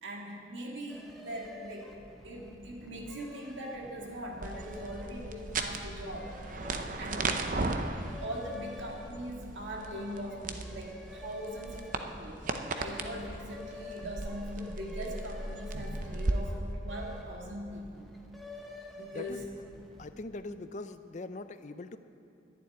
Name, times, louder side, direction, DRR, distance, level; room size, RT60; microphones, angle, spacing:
voice 1, 0.0-2.0 2.2-6.4 7.0-7.3 8.2-18.0 18.9-19.5 20.5-20.6, equal, 90° right, -1 dB, 1.9 m, -41 dB
sound 1, 0.9-20.3, left 2 dB, ahead, 0.9 m, -50 dB
sound 2, 4.4-16.3, right 3 dB, 45° right, 0.7 m, -37 dB
voice 2, 20.0-22.0, left 3 dB, 40° left, 11 dB, 0.5 m, -41 dB
11.0 x 7.4 x 9.6 m, 2.7 s
head